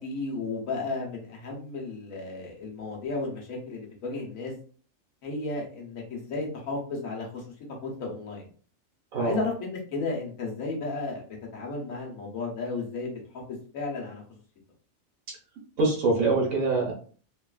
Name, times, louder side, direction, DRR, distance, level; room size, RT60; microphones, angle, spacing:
voice 1, 0.0-4.5 5.2-7.4 7.8-8.5 9.2-11.2 11.5-13.2 13.7-14.2, left 3 dB, 80° left, -1 dB, 1.3 m, -33 dB
voice 2, 15.8-16.9, right 3 dB, 75° right, -1 dB, 1.4 m, -24 dB
3.2 x 2.3 x 2.3 m, 0.42 s
omnidirectional pair, 1.4 m